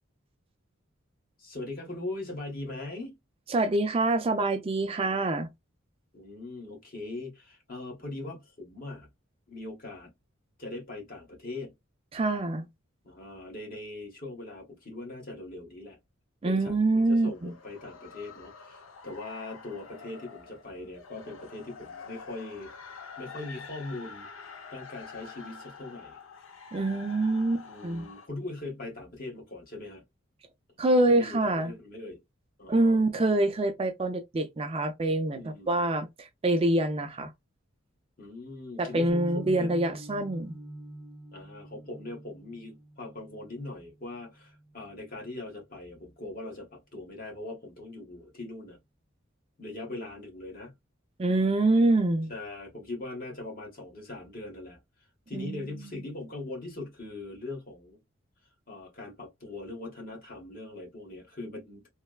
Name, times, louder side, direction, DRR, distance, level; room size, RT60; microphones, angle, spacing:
voice 1, 1.4-3.1 6.1-9.1 9.5-10.1 10.6-11.7 13.0-16.0 16.4-22.7 23.2-24.3 24.7-26.2 27.6-30.0 31.1-32.2 32.6-33.0 35.4-35.8 38.2-39.7 41.3-48.8 49.6-50.7 52.3-54.8 55.3-58.0 58.7-61.9, left 2 dB, 45° left, 1.3 m, -41 dB
voice 2, 3.5-5.5 12.1-12.7 16.4-17.5 26.7-28.1 30.8-31.7 32.7-37.3 38.8-40.6 51.2-52.3 55.3-56.0, right 2 dB, 30° right, 0.4 m, -26 dB
sound 1, 17.2-28.3, left 5 dB, 75° left, 0.6 m, -47 dB
sound 2, 39.1-45.2, right 1 dB, 5° left, 0.7 m, -44 dB
3.1 x 2.0 x 2.2 m
head